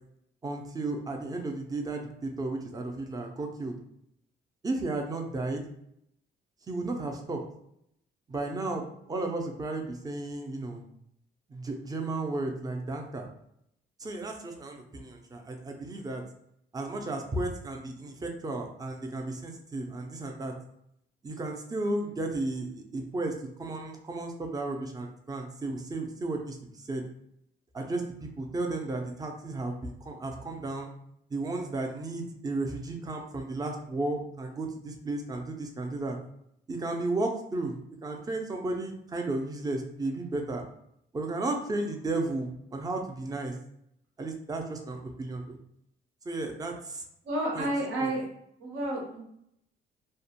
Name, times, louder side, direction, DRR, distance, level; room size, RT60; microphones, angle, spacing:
voice 1, 0.4-3.8 4.6-5.7 6.7-7.4 8.3-10.8 11.5-13.3 14.0-16.2 16.7-20.5 21.2-27.0 27.7-30.9 31.3-36.2 36.7-40.6 41.1-43.5 44.2-45.6 46.3-47.0 47.5-47.7 48.0-48.1, right 2 dB, 20° right, 3 dB, 0.4 m, -34 dB
voice 2, 47.2-48.3 48.6-49.2, right 1 dB, 85° right, -2 dB, 0.9 m, -30 dB
2.4 x 2.1 x 2.8 m, 0.74 s
cardioid pair, 90°, 20 cm